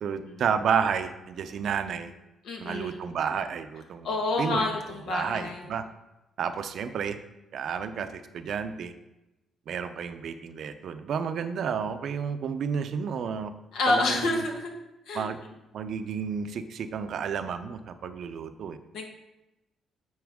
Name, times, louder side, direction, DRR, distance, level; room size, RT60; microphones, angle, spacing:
voice 1, 0.0-2.1 2.6-4.1 4.4-4.7 5.1-5.8 6.4-7.2 7.5-8.9 9.7-13.5 13.9-14.4 15.1-15.4 15.7-18.8, right 7 dB, 65° right, 9 dB, 0.6 m, -31 dB
voice 2, 2.4-3.1 4.0-5.7 13.7-14.7 15.1-15.3 18.9-19.1, left 2 dB, 75° left, 2 dB, 1.4 m, -28 dB
9.4 x 4.5 x 3.6 m, 0.96 s
cardioid pair, 90°, 0 cm